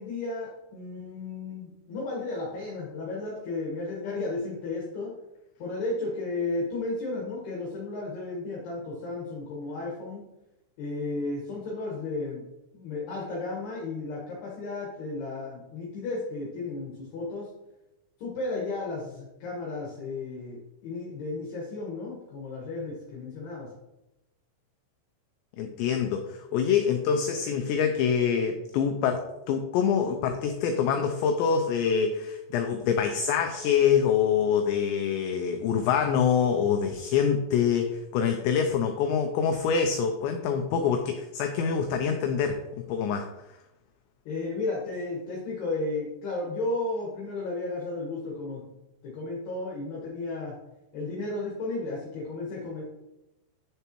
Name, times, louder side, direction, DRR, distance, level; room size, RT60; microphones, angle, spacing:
voice 1, 0.0-5.1 5.6-10.2 10.8-12.5 12.7-17.5 18.2-23.7 44.2-48.6 49.0-50.5 50.9-52.8, left 2 dB, 65° left, -4 dB, 3.2 m, -33 dB
voice 2, 25.6-42.6 42.9-43.3, left 7 dB, 90° left, 6 dB, 2.5 m, -25 dB
10.0 x 6.7 x 3.0 m, 0.94 s
omnidirectional pair, 5.8 m